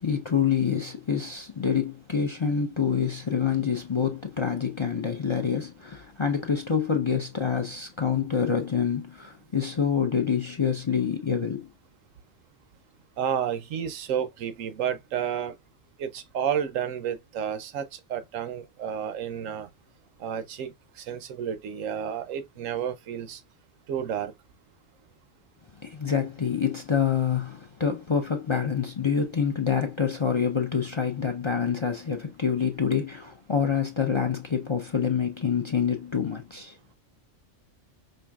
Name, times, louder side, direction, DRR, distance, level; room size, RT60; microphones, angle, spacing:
voice 1, 0.0-11.7 25.8-36.8, left 7 dB, 45° left, 0.4 m, -26 dB
voice 2, 13.2-15.5 16.0-19.7 20.2-23.4 23.9-24.3, right 8 dB, 85° right, 1.0 m, -31 dB
5.4 x 2.6 x 2.3 m
omnidirectional pair, 1.3 m